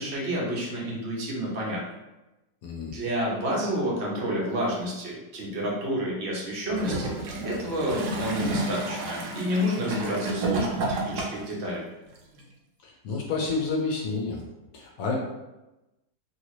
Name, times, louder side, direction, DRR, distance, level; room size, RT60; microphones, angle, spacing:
voice 1, 0.0-1.8 2.9-7.1 7.4-11.8, equal, 55° right, -4 dB, 0.8 m, -29 dB
voice 2, 2.6-3.0 12.8-14.4 14.7-15.1, left 4 dB, 65° left, -1 dB, 0.9 m, -29 dB
Gurgling / Toilet flush, 6.7-11.6 12.4-12.5, right 2 dB, 70° right, 1.1 m, -31 dB
2.9 x 2.7 x 3.0 m, 1.0 s
omnidirectional pair, 1.8 m